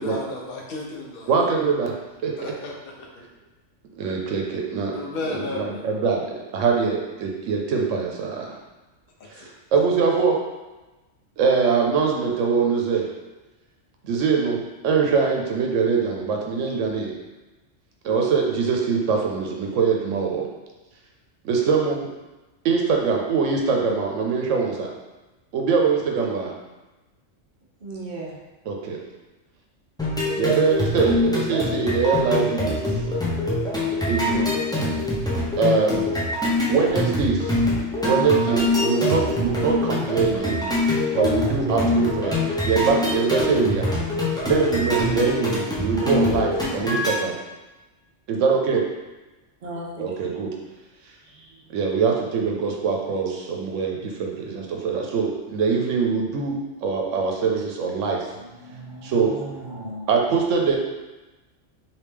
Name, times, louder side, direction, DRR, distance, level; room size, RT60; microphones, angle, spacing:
voice 1, 0.0-1.3 2.4-3.2 4.9-5.9 9.2-9.5, left 2 dB, 55° left, -1 dB, 0.8 m, -33 dB
voice 2, 1.3-2.0 2.2-2.3 4.0-4.9 5.3-6.2 6.5-8.6 9.3-10.4 11.4-13.1 14.0-17.1 18.0-20.5 21.4-22.1 22.6-24.9 25.5-26.5 28.7-29.0 30.3-33.2 34.1-34.5 35.6-36.1 36.7-37.6 38.0-40.8 41.1-42.4 42.6-43.9 44.4-47.4 48.3-48.8 50.0-50.5 51.7-58.3 59.0-59.4 60.1-60.8, right 5 dB, 80° right, 1 dB, 1.0 m, -23 dB
voice 3, 27.8-28.3 49.6-50.1 51.2-51.7 58.3-60.1, right 2 dB, 50° right, -3 dB, 0.6 m, -37 dB
sound 1, 30.0-47.1, left 2 dB, 5° left, 0.4 m, -24 dB
3.2 x 2.8 x 3.4 m, 1.1 s
omnidirectional pair, 1.3 m